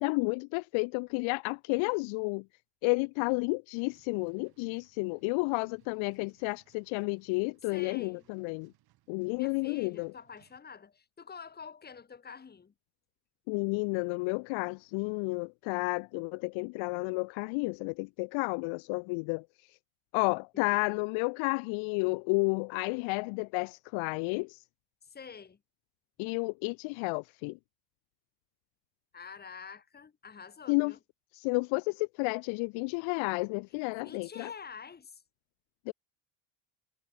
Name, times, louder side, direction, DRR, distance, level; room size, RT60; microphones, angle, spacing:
voice 1, 0.0-2.4 2.8-8.7 9.1-10.1 13.5-19.5 20.1-24.6 26.2-27.6 30.7-30.9 31.3-34.5 35.9-36.0, left 30 dB, 70° left, 0.7 m, -31 dB
sound 1, 3.7-10.6, right 15 dB, 45° right, 6.8 m, -69 dB
voice 2, 7.6-8.2 9.4-12.7 20.5-21.0 25.0-25.6 29.1-31.0 34.0-35.2, left 6 dB, 20° left, 4.8 m, -48 dB
cardioid pair, 175°, 49 cm